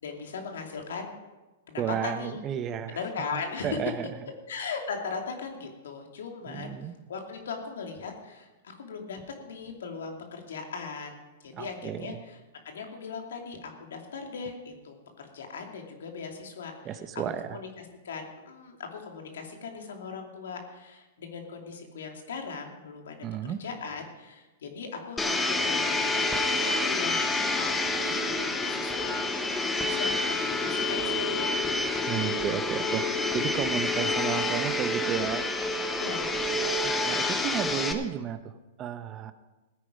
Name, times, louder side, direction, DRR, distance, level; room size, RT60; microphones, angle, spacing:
voice 1, 0.0-1.1 1.7-2.4 2.9-3.8 4.5-6.7 7.1-12.4 12.6-17.0 17.5-17.7 18.0-23.2 23.6-27.7 28.0-29.2 29.8-31.8 36.0-36.7, left 5 dB, 80° left, 3 dB, 2.6 m, -39 dB
voice 2, 1.8-3.0 3.6-4.1 6.5-6.9 11.5-12.2 16.8-17.6 23.2-23.6 32.1-35.5 36.8-38.5 38.8-39.3, right 9 dB, 30° right, 11 dB, 1.0 m, -32 dB
Domestic sounds home sounds, 25.2-37.9, left 2 dB, 10° left, 1.2 m, -28 dB
16.5 x 9.4 x 5.2 m, 1.1 s
hypercardioid pair, 130°, 0 cm